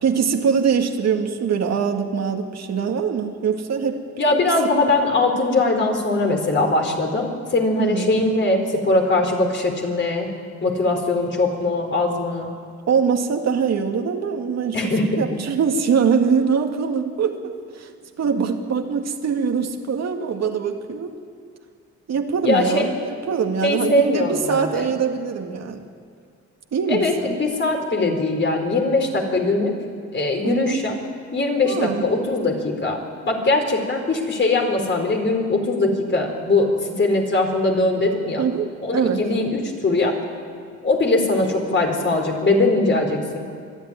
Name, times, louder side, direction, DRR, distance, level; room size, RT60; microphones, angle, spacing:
voice 1, 0.0-4.0 7.8-8.3 12.9-17.4 17.7-17.9 18.2-21.1 22.1-25.8 26.7-27.4 30.4-30.8 31.6-32.1 38.4-39.2, right 6 dB, 60° right, 4 dB, 2.1 m, -23 dB
voice 2, 4.2-10.3 10.6-12.5 14.7-15.3 22.4-22.9 23.6-24.9 26.9-29.7 30.1-30.9 31.3-33.0 33.3-38.5 38.8-40.2 40.8-43.4, left 2 dB, 40° left, 2 dB, 4.3 m, -21 dB
23.5 x 12.0 x 9.9 m, 2.2 s
cardioid pair, 90°, 30 cm